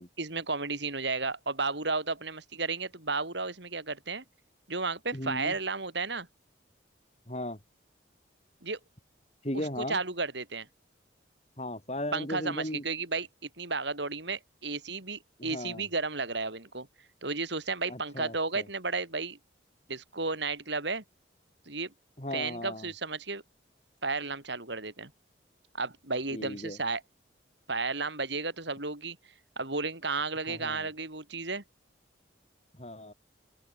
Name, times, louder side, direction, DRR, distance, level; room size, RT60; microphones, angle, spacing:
voice 1, 0.2-4.2 4.7-6.3 8.6-8.8 9.5-10.7 12.1-16.9 17.2-19.4 19.9-21.0 21.7-21.9 22.3-23.4 24.0-25.1 25.7-27.0 27.7-29.2 29.6-31.6, right 3 dB, 65° right, 4.5 m, -33 dB
voice 2, 5.1-5.5 7.3-7.6 9.4-10.0 11.6-12.8 15.4-15.8 17.9-18.6 22.2-22.9 26.3-26.8 30.5-30.9 32.8-33.1, left 1 dB, 35° left, 5.9 m, -36 dB
open air
head